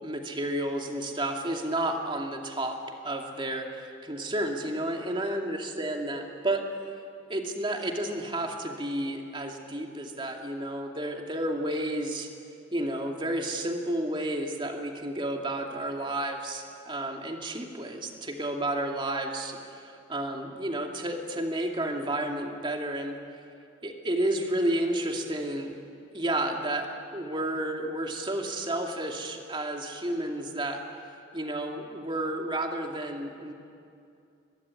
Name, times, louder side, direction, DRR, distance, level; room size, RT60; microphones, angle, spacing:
voice 1, 0.0-2.8 3.0-6.6 7.3-12.3 12.7-23.2 23.8-25.7 26.1-30.8 31.3-33.5, right 1 dB, 25° right, 2 dB, 2.4 m, -31 dB
23.0 x 21.5 x 9.7 m, 2.5 s
head